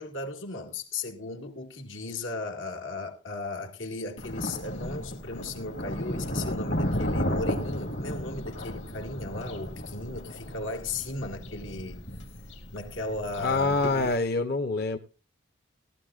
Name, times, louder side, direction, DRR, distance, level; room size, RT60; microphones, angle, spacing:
voice 1, 0.0-12.0 12.7-14.2, left 2 dB, 90° left, 2.1 m, -36 dB
Thunder, 4.2-14.2, equal, 65° left, 2.1 m, -34 dB
voice 2, 13.4-15.0, left 3 dB, 50° left, 0.7 m, -26 dB
18.0 x 12.5 x 2.5 m
head